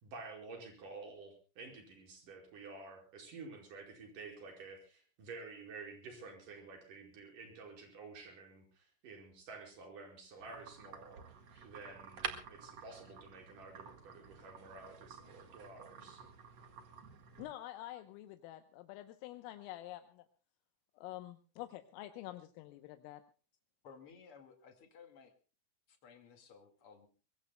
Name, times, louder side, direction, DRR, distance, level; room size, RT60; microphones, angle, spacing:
voice 1, 0.0-11.2 11.6-16.2, right 3 dB, 40° right, 2 dB, 6.0 m, -51 dB
sound 1, 10.4-17.5, right 6 dB, 80° right, 1.4 m, -49 dB
voice 2, 17.4-20.3 21.0-23.2, left 14 dB, 80° left, 8 dB, 3.5 m, -47 dB
voice 3, 23.8-25.3 25.9-27.1, left 6 dB, 60° left, 6 dB, 1.4 m, -57 dB
23.5 x 22.5 x 2.2 m, 0.35 s
omnidirectional pair, 5.9 m